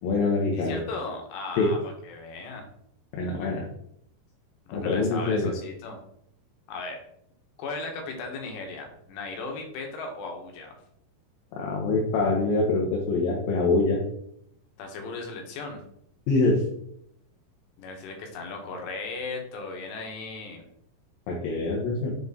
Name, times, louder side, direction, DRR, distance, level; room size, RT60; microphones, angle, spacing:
voice 1, 0.0-0.8 1.6-1.7 3.1-3.7 4.7-5.5 11.5-14.0 16.3-16.6 21.3-22.1, left 3 dB, 70° left, -1 dB, 2.5 m, -24 dB
voice 2, 0.5-2.7 4.7-6.0 6.7-7.0 7.6-10.8 14.8-15.8 17.8-20.6, left 3 dB, 90° left, 3 dB, 3.3 m, -37 dB
7.4 x 4.1 x 3.6 m, 0.72 s
omnidirectional pair, 4.8 m